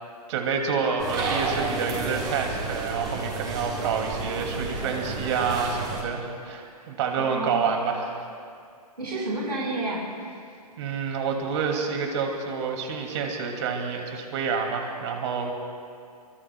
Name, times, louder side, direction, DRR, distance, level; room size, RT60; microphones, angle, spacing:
voice 1, 0.3-8.2 10.8-15.5, right 5 dB, 45° right, 2 dB, 2.5 m, -28 dB
sound 1, 1.0-6.0, right 3 dB, 20° right, 3.9 m, -31 dB
voice 2, 7.2-7.6 9.0-10.0, right 2 dB, 85° right, -5 dB, 4.6 m, -30 dB
24.0 x 24.0 x 2.3 m, 2.3 s
hypercardioid pair, 130°, 21 cm